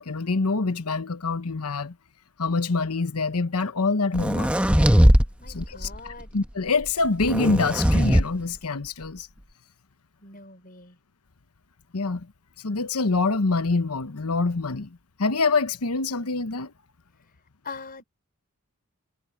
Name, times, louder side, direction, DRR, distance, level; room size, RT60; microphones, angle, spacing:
voice 1, 0.0-1.9 2.4-4.5 5.5-5.9 6.3-9.3 11.9-12.3 12.6-16.7, left 3 dB, 80° left, 1.0 m, -25 dB
sound 1, 4.1-5.3 5.6-6.0 7.2-8.2, equal, 5° right, 1.2 m, -19 dB
voice 2, 5.4-6.3 10.2-11.0 17.6-18.0, left 4 dB, 40° left, 5.6 m, -42 dB
head